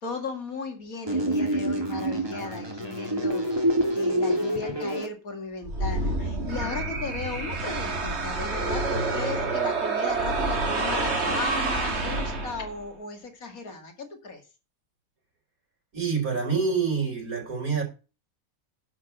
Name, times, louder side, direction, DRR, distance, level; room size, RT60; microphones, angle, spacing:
voice 1, 0.0-14.4, left 3 dB, 80° left, 2.6 m, -36 dB
sound 1, 1.1-5.1, right 1 dB, 15° right, 2.5 m, -27 dB
sound 2, 5.6-12.9, right 3 dB, 50° right, 2.3 m, -28 dB
voice 2, 15.9-17.8, right 5 dB, 85° right, 5.6 m, -26 dB
11.0 x 6.0 x 6.9 m
omnidirectional pair, 1.5 m